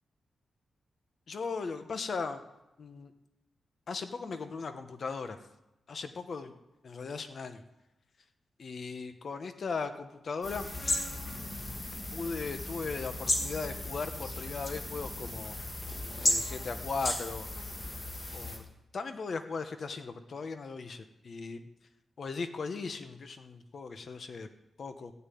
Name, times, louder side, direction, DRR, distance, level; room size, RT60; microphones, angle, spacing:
voice 1, 1.3-2.4 2.8-3.1 3.9-5.4 5.9-6.5 6.8-7.6 8.6-10.7 11.3-11.8 12.1-15.6 16.2-17.5 18.3-18.6 18.9-21.6 22.2-24.5 24.8-25.1, left 4 dB, 50° left, 8 dB, 1.2 m, -38 dB
sound 1, 10.4-18.6, left 1 dB, 25° left, 2.3 m, -35 dB
15.0 x 7.0 x 9.4 m, 0.92 s
wide cardioid pair, 125°, 0 cm